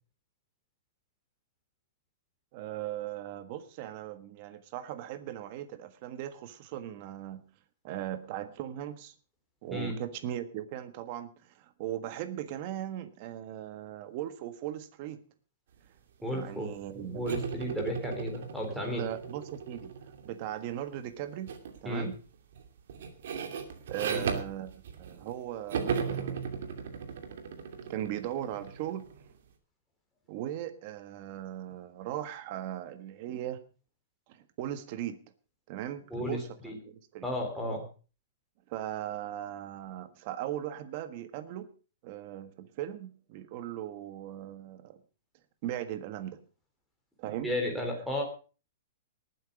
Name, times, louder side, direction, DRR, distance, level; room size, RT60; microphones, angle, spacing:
voice 1, 2.5-7.4 7.8-9.1 9.6-15.2 16.2-17.2 18.9-19.9 20.2-21.5 21.8-22.2 23.9-24.7 25.0-26.6 27.9-29.0 30.3-33.6 34.3-35.2 35.7-37.3 37.7-37.8 38.7-41.7 42.0-45.0 45.6-46.4 47.2-47.5, right 12 dB, 35° right, 11 dB, 1.4 m, -38 dB
voice 2, 16.2-16.7 16.9-19.1 21.9-22.1 24.1-24.3 36.1-36.8 37.2-37.8 47.4-48.2, left 1 dB, ahead, 2 dB, 3.5 m, -33 dB
sound 1, 17.3-20.6 21.5-21.8 22.1-25.4 25.7-29.2, right 6 dB, 65° right, 2.7 m, -37 dB
19.0 x 9.3 x 5.0 m, 0.36 s
hypercardioid pair, 165°, 0 cm